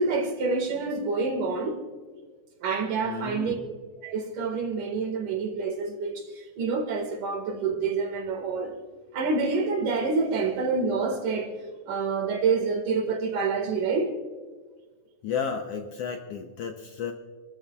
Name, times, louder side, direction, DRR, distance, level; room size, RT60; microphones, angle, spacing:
voice 1, 0.0-1.8 2.6-3.6 4.0-8.8 9.1-11.6 11.9-14.1, right 4 dB, 80° right, 3.4 m, -27 dB
voice 2, 3.1-3.6 15.2-17.1, left 6 dB, 70° left, 1.6 m, -32 dB
27.5 x 13.0 x 2.4 m
omnidirectional pair, 3.6 m